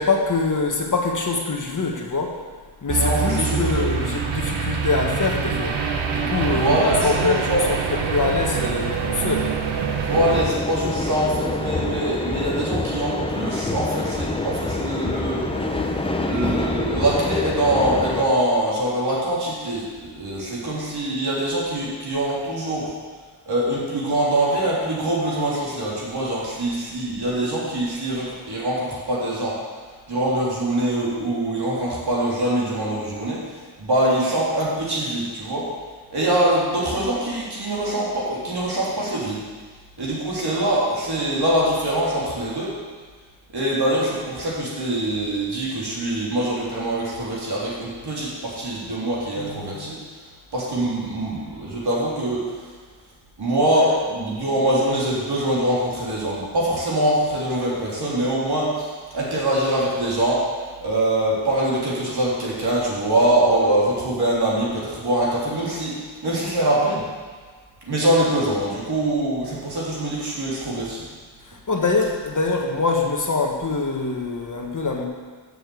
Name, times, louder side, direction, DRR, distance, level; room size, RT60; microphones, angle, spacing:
voice 1, 0.0-2.3 2.8-5.8 6.1-9.5 71.5-75.0, left 3 dB, 40° left, 1 dB, 1.3 m, -24 dB
sound 1, 2.9-10.4, right 5 dB, 75° right, 1.1 m, -25 dB
voice 2, 3.0-3.9 6.5-7.6 10.0-15.4 15.7-16.0 16.3-22.9 23.5-29.6 30.1-33.4 33.8-35.7 36.1-39.4 40.0-42.7 43.5-50.0 50.5-52.6 53.4-60.4 60.8-65.9 66.2-67.0 67.9-71.0, right 1 dB, 55° right, -6 dB, 3.5 m, -23 dB
sound 2, 10.1-18.2, left 2 dB, 10° left, 0.8 m, -26 dB
7.1 x 6.7 x 8.0 m, 1.5 s
wide cardioid pair, 100°, 47 cm